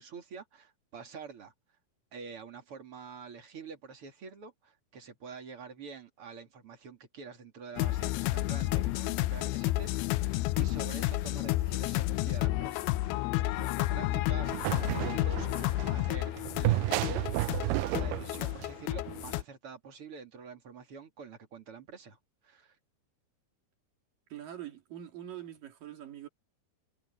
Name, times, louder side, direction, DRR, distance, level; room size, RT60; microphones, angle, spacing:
voice 1, 0.0-1.5 2.1-10.3 10.6-22.2 22.4-22.8, right 5 dB, 40° right, 3.0 m, -47 dB
sound 1, 7.8-19.4, left 17 dB, 85° left, 2.5 m, -31 dB
sound 2, 14.4-19.3, right 16 dB, 85° right, 2.0 m, -32 dB
voice 2, 24.3-26.3, right 11 dB, 60° right, 4.0 m, -44 dB
omnidirectional pair, 4.5 m